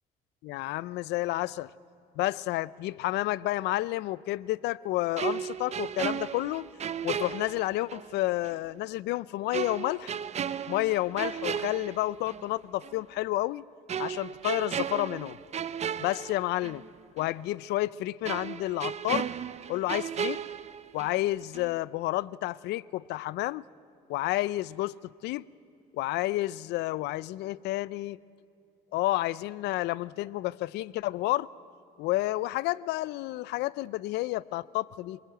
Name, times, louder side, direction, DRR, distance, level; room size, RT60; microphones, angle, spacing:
voice 1, 0.4-1.7 2.2-6.7 7.0-10.1 10.7-13.6 14.0-15.4 16.0-16.8 17.2-19.3 19.7-20.4 20.9-23.6 24.1-25.0 25.2-25.4 25.9-28.2 28.9-31.5 32.0-35.2, left 17 dB, 85° left, 21 dB, 0.5 m, -30 dB
sound 1, 5.2-8.1 8.4-8.6 9.5-12.5 12.8-13.0 13.9-16.9 17.2-17.3 18.2-21.3 21.5-21.8, right 8 dB, 40° right, 0.7 m, -35 dB
26.0 x 20.5 x 9.0 m, 2.5 s
cardioid pair, 110°, 17 cm